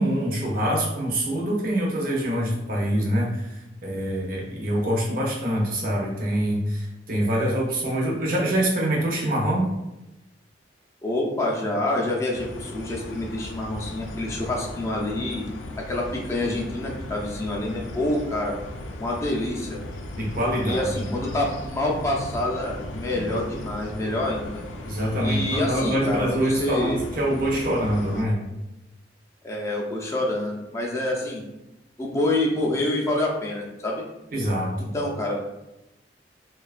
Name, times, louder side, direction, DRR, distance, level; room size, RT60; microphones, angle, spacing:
voice 1, 0.0-3.5 3.8-9.7 20.1-21.1 24.8-28.4 34.3-34.9, right 1 dB, 50° right, -3 dB, 0.6 m, -25 dB
voice 2, 11.0-15.5 15.8-18.6 19.0-19.8 20.6-24.6 25.2-27.0 29.4-31.4 32.0-34.0 34.8-35.4, left 1 dB, 15° left, -2 dB, 0.4 m, -27 dB
sound 1, 12.3-28.3, left 1 dB, 90° left, 0.4 m, -37 dB
2.7 x 2.2 x 2.4 m, 0.95 s
head